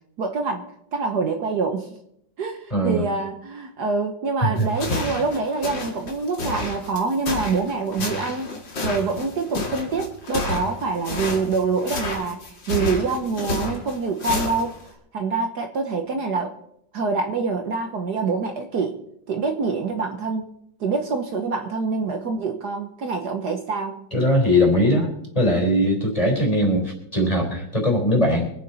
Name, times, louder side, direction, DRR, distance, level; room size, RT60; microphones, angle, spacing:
voice 1, 0.2-1.9 2.4-8.5 8.8-14.7 15.1-16.5 16.9-19.0 19.3-20.4 20.8-24.1, right 4 dB, 60° right, 5 dB, 1.6 m, -25 dB
voice 2, 2.7-3.1 4.4-4.7 24.1-25.1 25.3-28.5, equal, 15° left, 0 dB, 3.9 m, -20 dB
sound 1, 4.6-14.9, left 2 dB, 70° left, 3.0 m, -30 dB
25.0 x 8.9 x 4.2 m, 0.74 s
omnidirectional pair, 2.1 m